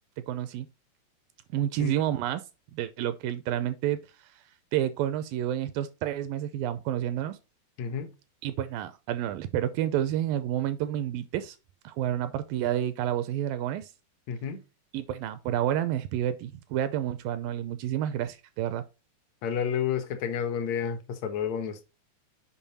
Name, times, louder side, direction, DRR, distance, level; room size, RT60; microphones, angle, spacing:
voice 1, 0.3-0.7 1.5-2.4 2.7-4.0 4.7-7.4 8.4-11.6 11.8-13.9 14.9-18.8, right 11 dB, 80° right, 2.1 m, -29 dB
voice 2, 7.8-8.1 14.3-14.6 19.4-21.8, left 7 dB, 65° left, 1.8 m, -30 dB
7.2 x 5.2 x 4.1 m
omnidirectional pair, 4.3 m